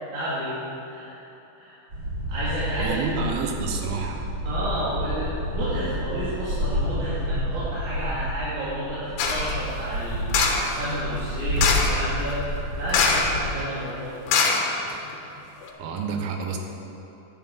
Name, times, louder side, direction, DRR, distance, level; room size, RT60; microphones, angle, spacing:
voice 1, 0.1-0.6 0.8-1.2 1.6-1.8 2.3-3.0 4.5-14.2, equal, 60° right, -11 dB, 3.5 m, -31 dB
sound 1, 1.9-13.5, equal, 35° right, 3.3 m, -29 dB
voice 2, 2.8-4.2 15.8-16.6, right 5 dB, 85° right, 3 dB, 2.9 m, -29 dB
sound 2, 9.2-9.5 10.3-10.7 11.6-12.0 12.9-13.4 13.7-13.8 14.3-15.1 15.6-15.7, left 5 dB, 85° left, 2.9 m, -22 dB
10.5 x 7.5 x 7.7 m, 3.0 s
omnidirectional pair, 4.1 m